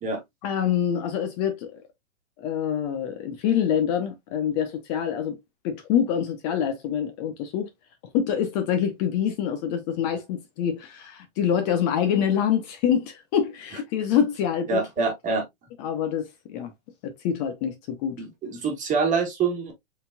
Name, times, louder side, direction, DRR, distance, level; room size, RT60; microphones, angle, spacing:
voice 1, 0.4-1.8 2.4-5.4 5.6-7.7 8.1-15.1 15.8-16.7 17.0-18.2, left 8 dB, 35° left, 0.8 m, -26 dB
voice 2, 14.7-15.4 18.2-19.7, right 4 dB, 20° right, 1.6 m, -25 dB
5.3 x 4.0 x 2.2 m
hypercardioid pair, 140°, 36 cm